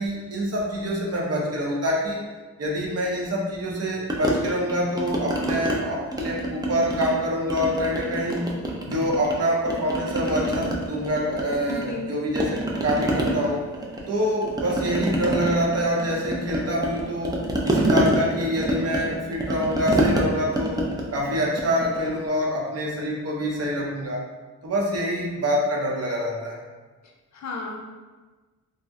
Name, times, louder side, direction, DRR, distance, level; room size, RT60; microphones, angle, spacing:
voice 1, 0.0-2.2 2.6-8.5 8.8-13.7 14.1-17.4 17.6-20.8 21.1-24.2 24.6-26.6, equal, 50° right, -2 dB, 0.6 m, -26 dB
sound 1, 4.1-5.8 6.1-7.2 7.5-9.4 9.7-12.1 12.3-22.2, right 1 dB, 15° right, 0.3 m, -27 dB
voice 2, 11.7-12.1 27.3-27.8, left 4 dB, 60° left, 1 dB, 0.5 m, -33 dB
2.6 x 2.1 x 3.4 m, 1.3 s
wide cardioid pair, 135°, 32 cm